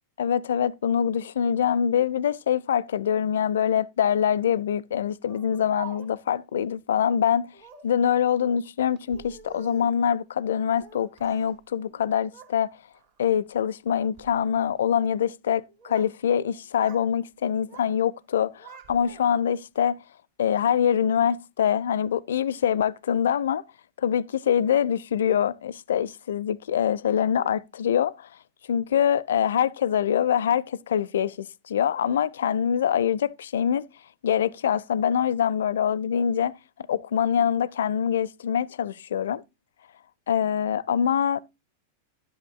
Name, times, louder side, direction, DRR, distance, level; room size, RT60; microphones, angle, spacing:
voice 1, 0.2-7.5 7.8-12.7 13.2-20.0 20.4-23.6 24.0-28.3 28.7-33.8 34.2-36.5 36.9-39.4 40.3-41.4, left 8 dB, 65° left, 0.4 m, -24 dB
Speech, 5.3-6.4 7.5-8.0 9.0-10.0 10.7-11.5 11.8-12.6 12.9-13.3 14.0-14.3 15.4-16.2 16.4-17.1 17.4-18.0 18.3-19.5, right 7 dB, 50° right, 2.2 m, -47 dB
12.5 x 10.5 x 2.3 m
figure-of-eight pair, 90°, 0 cm